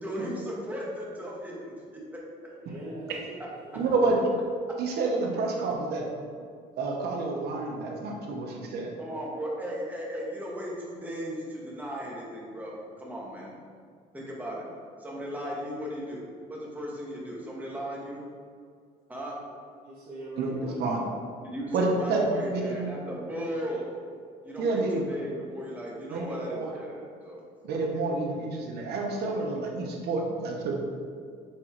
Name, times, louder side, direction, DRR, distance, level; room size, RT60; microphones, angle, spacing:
voice 1, 0.0-1.8 9.0-13.5 14.1-14.7 15.0-16.2 16.5-18.2 19.1-19.4 21.4-23.9 24.4-27.4 27.9-28.0, equal, 10° right, -4 dB, 1.5 m, -36 dB
voice 2, 2.6-3.8 5.7-5.9 19.8-20.8, right 1 dB, 55° right, -9 dB, 1.6 m, -42 dB
voice 3, 3.7-4.2 4.8-6.1 6.8-8.9 20.4-21.0 21.7-22.9 24.6-25.0 26.1-26.7 27.6-30.7, right 3 dB, 70° right, 0 dB, 1.1 m, -29 dB
6.1 x 3.8 x 4.6 m, 2.2 s
cardioid pair, 110°, 17 cm